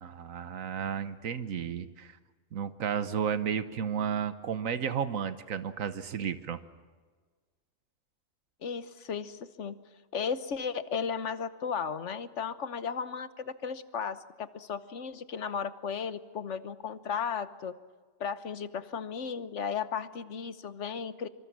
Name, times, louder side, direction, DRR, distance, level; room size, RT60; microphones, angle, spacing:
voice 1, 0.0-2.1 2.5-6.6, right 7 dB, 85° right, 11 dB, 1.5 m, -33 dB
voice 2, 8.6-9.8 10.1-17.7 18.2-21.3, left 6 dB, 65° left, 12 dB, 1.3 m, -35 dB
25.5 x 25.5 x 7.4 m, 1.4 s
omnidirectional pair, 1.4 m